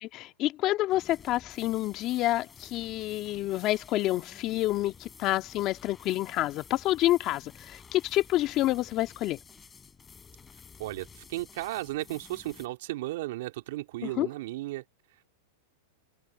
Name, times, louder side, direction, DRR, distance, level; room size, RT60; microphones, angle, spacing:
voice 1, 0.0-9.4 14.0-14.3, left 16 dB, 40° left, 1.8 m, -28 dB
sound 1, 0.9-12.7, left 6 dB, 15° left, 6.5 m, -52 dB
voice 2, 10.8-14.8, right 17 dB, 65° right, 2.9 m, -35 dB
hypercardioid pair, 125°, 0 cm